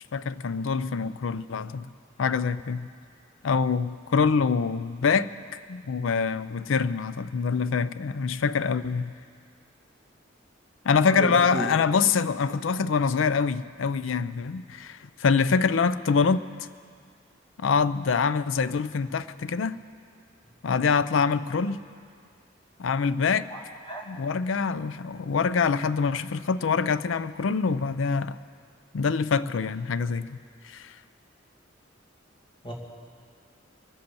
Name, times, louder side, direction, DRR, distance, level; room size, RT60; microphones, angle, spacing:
voice 1, 0.1-1.9 2.2-2.9 3.4-9.1 10.8-16.4 17.6-19.8 20.6-21.8 22.8-23.5 24.1-28.4 28.9-30.4 30.6-30.9, left 5 dB, 85° left, 15 dB, 0.5 m, -25 dB
voice 2, 11.0-11.7 23.5-23.6 23.9-24.0 32.6-32.7, equal, 25° left, -2 dB, 2.3 m, -32 dB
23.0 x 7.9 x 6.9 m, 2.1 s
head